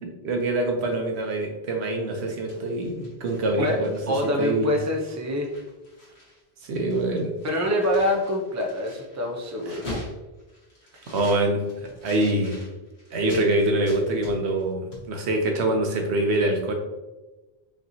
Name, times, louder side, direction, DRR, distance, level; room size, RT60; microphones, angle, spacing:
voice 1, 0.0-4.7 6.6-7.3 9.7-9.8 11.1-12.6 13.1-16.7, right 1 dB, 90° right, 2 dB, 1.1 m, -25 dB
sound 1, 2.3-4.3 4.7-4.8 5.1-6.4 6.7-13.5 13.9-14.7 14.9-15.1, left 1 dB, 85° left, 1.8 m, -43 dB
voice 2, 4.1-5.5 7.4-10.0 10.9-11.0, left 1 dB, 20° right, 0 dB, 0.5 m, -25 dB
5.2 x 2.9 x 2.7 m, 1.1 s
omnidirectional pair, 1.1 m